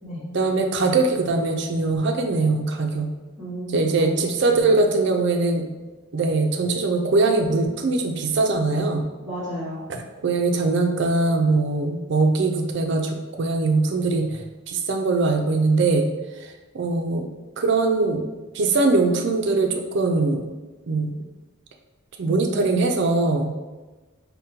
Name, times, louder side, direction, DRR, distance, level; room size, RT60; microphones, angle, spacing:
voice 1, 0.3-3.1 3.7-5.7 6.1-9.0 9.9-14.4 14.7-16.1 16.4-17.3 17.6-18.2 18.5-20.5 20.9-21.1 22.2-23.5, right 3 dB, 60° right, 3 dB, 0.4 m, -21 dB
voice 2, 3.4-4.1 4.5-4.7 9.2-9.9 22.2-22.8, equal, ahead, -16 dB, 1.1 m, -33 dB
5.1 x 2.1 x 2.7 m, 1.2 s
head